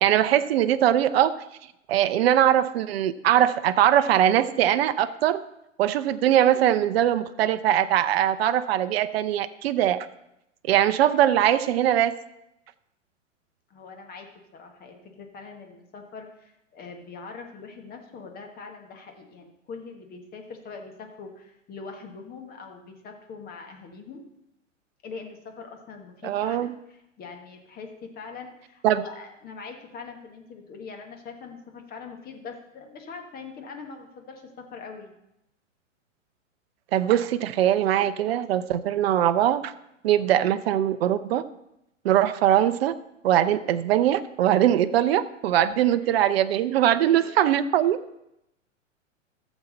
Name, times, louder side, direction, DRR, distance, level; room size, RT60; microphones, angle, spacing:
voice 1, 0.0-1.3 1.9-5.4 5.8-10.1 10.6-12.2 26.2-26.7 28.8-29.0 36.9-39.7 40.0-41.4 42.0-42.9 43.2-48.0, right 11 dB, 50° right, 11 dB, 0.6 m, -21 dB
voice 2, 13.7-14.3 14.5-24.2 25.0-35.1 46.0-46.2 47.0-47.5, left 4 dB, 25° left, 4 dB, 1.5 m, -42 dB
14.0 x 7.2 x 4.1 m, 0.84 s
figure-of-eight pair, 105°, 39 cm